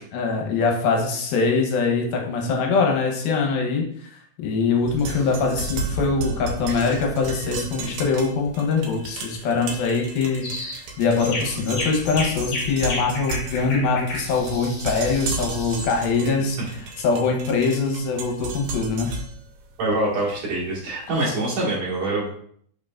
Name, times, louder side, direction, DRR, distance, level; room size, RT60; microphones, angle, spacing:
voice 1, 0.1-16.6 17.0-19.1, left 4 dB, 75° left, 1 dB, 2.7 m, -23 dB
sound 1, 4.8-20.9, right 3 dB, 85° right, 2.9 m, -34 dB
Cough, 5.0-5.8 6.1-6.2 6.6-8.1 8.8-9.1 9.4-9.5 9.8-9.9 11.2-12.4, right 3 dB, 70° right, 1.6 m, -41 dB
sound 2, 10.4-10.8 11.2-15.9, left 2 dB, 55° left, 3.4 m, -32 dB
voice 2, 19.8-22.3, right 2 dB, 55° right, -6 dB, 2.7 m, -24 dB
6.5 x 6.1 x 2.4 m, 0.62 s
omnidirectional pair, 4.4 m